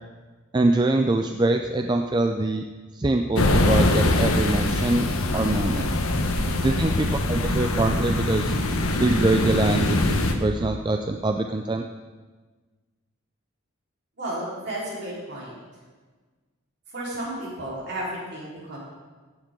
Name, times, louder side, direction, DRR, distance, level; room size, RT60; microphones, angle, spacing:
voice 1, 0.5-2.6 2.9-5.1 5.3-5.9 6.6-8.6 9.0-11.9, right 2 dB, 20° right, 5 dB, 0.4 m, -24 dB
sound 1, 3.4-10.3, left 2 dB, 85° left, 1.1 m, -23 dB
voice 2, 14.2-15.6 16.9-18.8, right 1 dB, 50° right, -6 dB, 4.2 m, -33 dB
15.0 x 9.1 x 3.8 m, 1.3 s
head